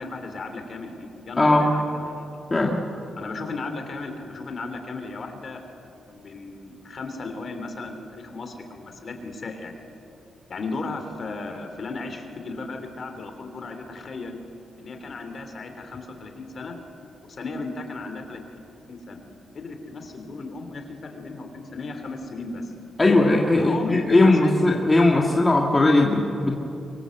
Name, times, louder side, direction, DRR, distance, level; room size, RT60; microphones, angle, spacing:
voice 1, 0.0-2.2 3.1-5.6 6.0-9.7 10.5-14.4 14.8-16.8 17.3-18.4 18.9-19.2 19.5-22.7 23.5-24.5, left 3 dB, 40° left, 6 dB, 3.2 m, -35 dB
voice 2, 1.4-1.7 2.5-2.8 23.0-26.6, left 2 dB, 15° left, -1 dB, 1.8 m, -19 dB
25.0 x 23.5 x 7.9 m, 2.8 s
wide cardioid pair, 160°, 0 cm